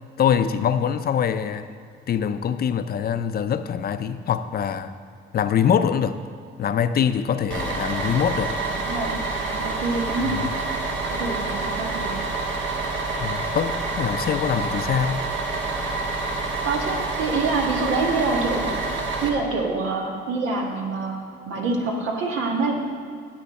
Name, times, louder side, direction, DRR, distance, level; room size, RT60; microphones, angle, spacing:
voice 1, 0.2-1.7 2.1-4.9 5.3-6.2 6.6-8.5 10.2-10.5 13.2-15.2, left 8 dB, 50° left, 11 dB, 0.5 m, -23 dB
Bus, 7.5-19.3, right 3 dB, 70° right, 1.4 m, -27 dB
voice 2, 8.8-9.2 9.4-10.3 11.1-12.2 16.6-18.7 19.2-22.7, right 3 dB, 90° right, 0 dB, 1.5 m, -26 dB
10.0 x 8.3 x 4.3 m, 2.2 s
cardioid pair, 90°, 20 cm